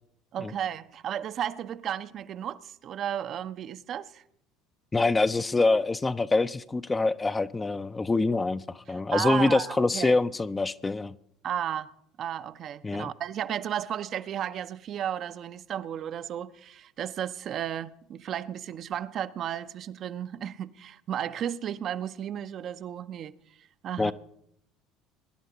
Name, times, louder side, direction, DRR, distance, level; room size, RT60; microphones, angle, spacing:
voice 1, 0.3-4.2 8.9-10.2 11.4-11.9 12.2-23.3 23.6-24.1, right 10 dB, 45° right, 0.5 m, -34 dB
voice 2, 4.9-11.2 12.8-13.1 24.0-24.1, left 3 dB, 20° left, 0.4 m, -25 dB
22.5 x 11.0 x 2.8 m
figure-of-eight pair, 65°, 0 cm